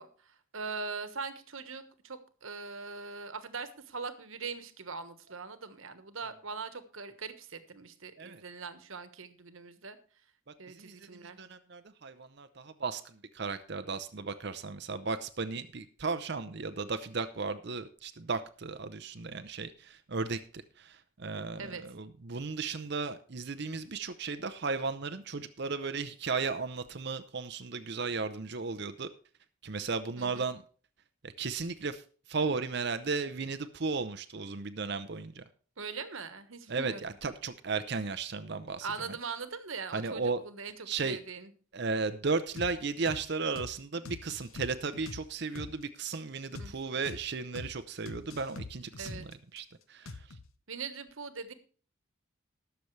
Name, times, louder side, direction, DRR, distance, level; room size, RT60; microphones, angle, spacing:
voice 1, 0.0-10.0 10.6-11.4 21.6-21.8 30.2-30.5 35.8-37.1 38.8-41.5 46.6-46.7 48.9-49.3 50.7-51.5, right 4 dB, 70° right, 11 dB, 1.3 m, -41 dB
voice 2, 10.7-20.4 20.8-29.1 29.6-30.6 31.2-32.0 32.3-35.4 36.7-39.1 39.9-40.4 40.9-41.2 41.7-50.2, right 4 dB, 50° right, 10 dB, 0.7 m, -35 dB
sound 1, 42.6-42.7 43.1-43.2 43.6-43.7 44.0-45.7 46.1-46.2 46.5-46.7 47.0-47.2 47.5-47.7 48.1-49.6 50.1-50.5, left 3 dB, 75° left, 1.0 m, -43 dB
20.0 x 7.0 x 3.2 m, 0.41 s
head